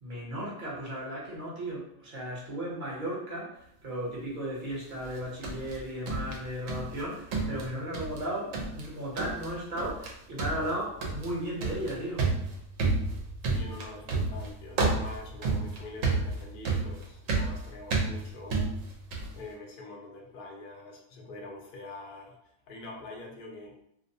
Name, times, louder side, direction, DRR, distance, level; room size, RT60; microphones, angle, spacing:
voice 1, 0.0-3.6 3.8-12.3, right 1 dB, 45° right, -5 dB, 0.8 m, -35 dB
sound 1, 5.0-7.0 7.3-8.3 8.5-8.9 9.2-9.5 9.8-10.1 10.4-19.4, right 3 dB, 80° right, 1.0 m, -31 dB
voice 2, 13.5-18.7 19.3-22.4 22.7-23.8, left 2 dB, 55° left, 0 dB, 0.6 m, -45 dB
2.6 x 2.0 x 2.6 m, 0.75 s
omnidirectional pair, 1.4 m